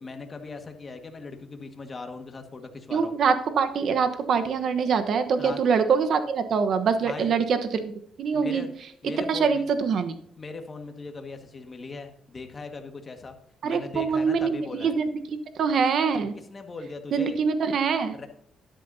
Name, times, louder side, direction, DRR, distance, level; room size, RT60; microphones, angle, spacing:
voice 1, 0.0-3.2 5.4-5.6 7.0-7.4 8.3-8.7 9.0-9.6 10.4-13.4 13.6-14.9 16.5-17.4 18.1-18.3, left 3 dB, 30° left, 5 dB, 1.7 m, -39 dB
voice 2, 2.9-7.9 8.2-8.6 9.3-10.1 13.6-15.0 15.6-16.3 17.1-18.2, right 6 dB, 65° right, 9 dB, 1.1 m, -24 dB
12.5 x 10.5 x 2.8 m, 0.71 s
cardioid pair, 90°, 0 cm